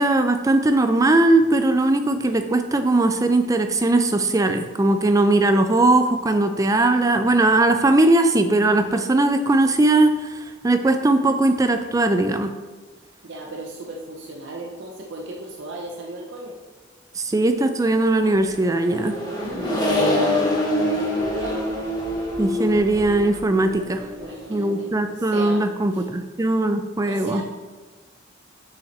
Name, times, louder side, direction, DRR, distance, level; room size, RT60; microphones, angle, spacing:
voice 1, 0.0-12.5 17.2-19.1 22.4-24.0 24.5-27.4, right 2 dB, 15° right, 8 dB, 0.3 m, -19 dB
voice 2, 13.2-16.5 19.2-20.0 20.8-21.6 24.2-25.7 25.9-26.1 27.1-27.4, right 1 dB, 65° right, 0 dB, 0.7 m, -35 dB
Accelerating revving vroom, 18.2-24.9, left 1 dB, 20° left, 1.0 m, -25 dB
6.6 x 5.6 x 3.2 m, 1.3 s
head